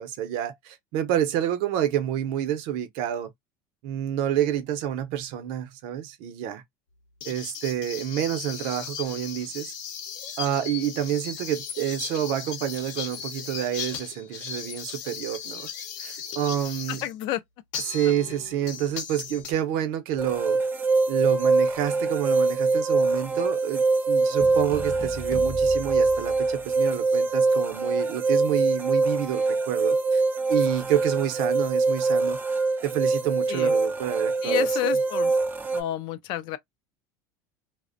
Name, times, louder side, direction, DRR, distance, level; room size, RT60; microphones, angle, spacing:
voice 1, 0.0-3.3 3.8-6.6 7.2-9.7 10.4-15.7 16.0-17.0 17.8-20.6 21.1-30.2 30.5-32.4 32.8-34.9, right 10 dB, 65° right, 0.6 m, -28 dB
sound 1, 7.2-17.1 17.7-19.5, left 7 dB, 80° left, 0.8 m, -37 dB
voice 2, 16.9-17.4 18.3-18.4 33.5-33.7 34.4-35.3 35.7-36.6, left 14 dB, 55° left, 0.4 m, -30 dB
sound 2, 20.2-35.8, right 3 dB, 20° right, 0.4 m, -24 dB
sound 3, 24.4-26.9, left 1 dB, 25° left, 0.7 m, -39 dB
2.4 x 2.1 x 2.5 m
supercardioid pair, 140°, 10 cm